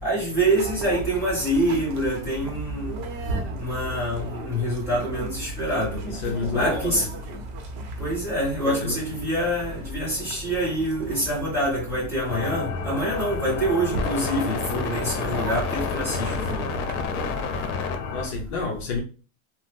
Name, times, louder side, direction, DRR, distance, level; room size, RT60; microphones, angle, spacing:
voice 1, 0.0-3.0 3.6-6.0 6.5-7.1 8.0-16.7, right 1 dB, 5° right, 1.3 m, -26 dB
sound 1, 0.6-17.7, right 2 dB, 55° right, 0.7 m, -36 dB
voice 2, 6.0-7.1 8.6-9.0 13.1-13.3 14.7-15.0 18.1-19.0, left 4 dB, 55° left, 0.7 m, -30 dB
sound 2, 12.3-18.3, left 5 dB, 85° left, 0.7 m, -29 dB
2.8 x 2.0 x 3.4 m
cardioid pair, 175°, 42 cm